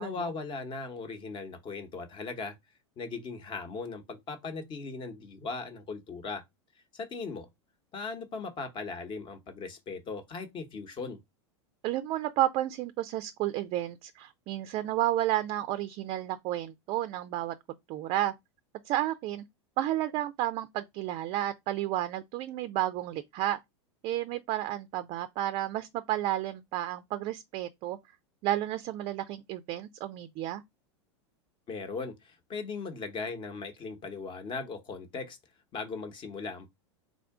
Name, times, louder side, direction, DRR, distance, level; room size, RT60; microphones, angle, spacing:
voice 1, 0.0-2.6 3.0-6.4 6.9-7.5 7.9-11.2 31.7-35.4 35.7-36.7, left 4 dB, 35° left, 0.9 m, -38 dB
voice 2, 11.8-17.5 17.9-18.3 18.8-19.4 19.8-23.6 24.0-28.0 28.4-30.6, right 13 dB, 40° right, 0.4 m, -31 dB
3.6 x 2.4 x 3.5 m
hypercardioid pair, 110°, 15 cm